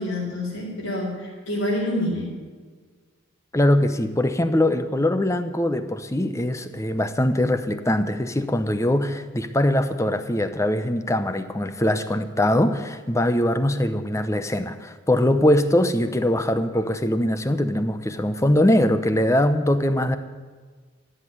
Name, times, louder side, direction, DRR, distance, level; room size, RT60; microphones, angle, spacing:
voice 1, 0.0-2.3, left 1 dB, 75° left, -8 dB, 4.3 m, -27 dB
voice 2, 3.5-20.2, left 1 dB, 15° left, 10 dB, 0.7 m, -22 dB
14.0 x 8.0 x 9.5 m, 1.5 s
head